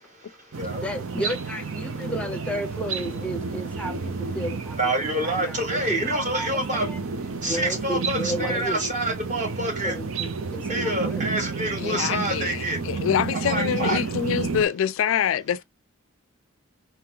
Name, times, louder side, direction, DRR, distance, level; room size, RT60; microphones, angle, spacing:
sound 1, 0.5-14.6, right 4 dB, 70° right, 0.7 m, -31 dB
voice 1, 0.8-7.0 7.4-8.8 9.8-11.3 13.8-14.1, right 1 dB, 5° left, 0.7 m, -33 dB
voice 2, 4.8-6.8 7.4-9.9 10.7-12.8 13.4-14.0, right 1 dB, 35° right, 1.5 m, -27 dB
voice 3, 11.8-15.6, left 8 dB, 65° left, 0.3 m, -25 dB
4.4 x 3.7 x 2.7 m
head